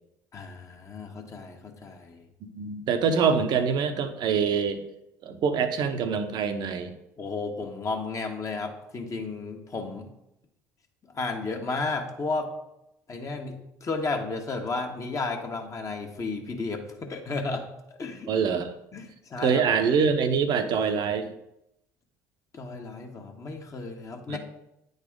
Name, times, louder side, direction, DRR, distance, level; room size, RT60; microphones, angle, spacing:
voice 1, 0.3-2.2 7.2-10.1 11.1-12.5 13.1-17.7 18.0-18.3 18.9-19.6 22.5-24.4, left 3 dB, 35° left, 2 dB, 1.4 m, -33 dB
voice 2, 2.5-4.8 5.2-6.9 18.3-18.7 19.4-21.3 24.3-24.4, right 6 dB, 55° right, 8 dB, 0.8 m, -25 dB
9.3 x 4.0 x 3.7 m, 0.83 s
hypercardioid pair, 65°, 9 cm